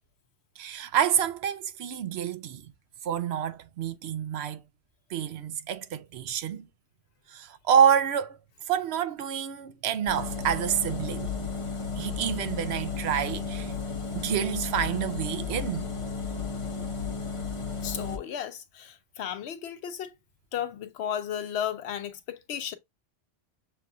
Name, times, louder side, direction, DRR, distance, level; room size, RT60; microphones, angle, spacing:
voice 1, 0.6-2.6 3.0-4.6 5.1-6.7 7.3-8.4 8.7-11.3 12.0-13.7 14.1-15.9, right 9 dB, 75° right, 0.8 m, -28 dB
sound 1, 10.1-18.2, left 5 dB, 35° left, 0.8 m, -33 dB
voice 2, 17.8-20.1 20.5-22.8, left 9 dB, 80° left, 0.9 m, -34 dB
6.7 x 2.4 x 2.5 m
omnidirectional pair, 1.1 m